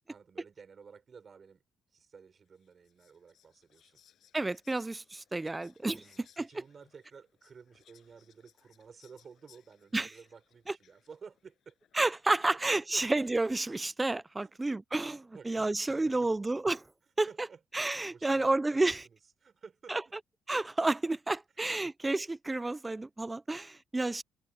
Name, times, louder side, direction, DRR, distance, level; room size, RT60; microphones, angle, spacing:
voice 1, 0.0-1.6 1.9-4.0 5.9-11.8 12.4-13.1 14.4-14.6 15.2-16.4 17.3-17.6 18.1-20.1 21.8-21.9 23.5-23.6, right 6 dB, 45° right, 6.1 m, -53 dB
Whispering, 2.5-14.0, left 10 dB, 70° left, 7.0 m, -67 dB
voice 2, 4.3-6.5 9.9-10.1 12.0-16.8 17.2-17.3 17.7-19.0 19.9-20.0 20.5-24.2, right 2 dB, 15° right, 0.6 m, -30 dB
cardioid pair, 90°, 0 cm